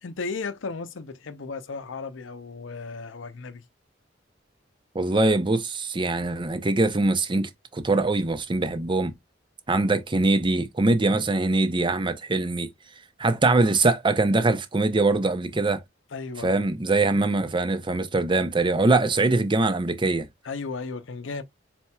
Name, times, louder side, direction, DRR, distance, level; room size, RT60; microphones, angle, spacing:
voice 1, 0.0-3.6 16.1-16.6 20.4-21.4, left 4 dB, 90° left, 0.6 m, -35 dB
voice 2, 4.9-9.1 9.7-12.7 13.2-15.8 16.4-20.3, right 2 dB, 25° right, 0.7 m, -23 dB
4.3 x 4.3 x 2.3 m
head